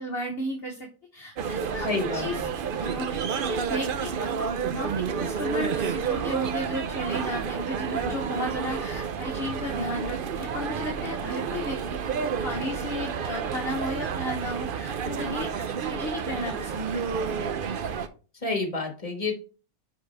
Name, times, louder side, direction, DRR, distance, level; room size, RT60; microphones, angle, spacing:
voice 1, 0.0-2.5 2.8-4.5 4.7-11.8 12.4-17.4, equal, 45° left, 2 dB, 1.2 m, -34 dB
sound 1, 1.4-18.1, right 6 dB, 55° right, 0.6 m, -30 dB
voice 2, 1.8-2.5 18.4-19.4, left 3 dB, 25° left, 2 dB, 1.7 m, -29 dB
10.0 x 4.1 x 3.4 m, 0.36 s
omnidirectional pair, 1.5 m